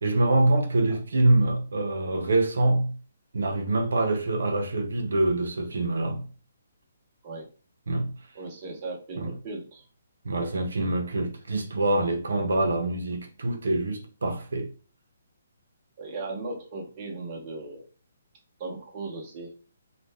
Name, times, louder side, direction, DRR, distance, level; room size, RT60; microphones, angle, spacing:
voice 1, 0.0-3.0 3.3-6.3 7.9-8.1 9.2-9.3 10.2-14.7, right 2 dB, 80° right, 0.5 m, -25 dB
voice 2, 8.3-9.8 16.0-17.8 18.6-19.5, right 3 dB, 25° right, 0.7 m, -37 dB
2.4 x 2.1 x 3.3 m
hypercardioid pair, 170°, 0 cm